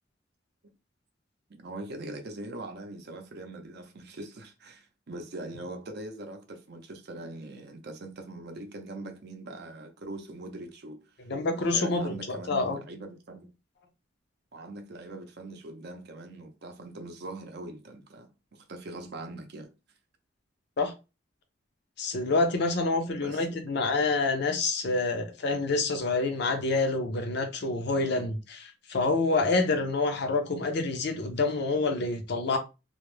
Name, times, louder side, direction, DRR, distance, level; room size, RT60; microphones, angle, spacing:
voice 1, 1.5-11.1 11.5-13.5 14.5-19.7 23.1-23.8, right 2 dB, 60° right, 0.6 m, -42 dB
voice 2, 11.3-12.8 20.8-20.9 22.0-32.6, left 3 dB, 60° left, 0.5 m, -27 dB
2.3 x 2.0 x 3.1 m
head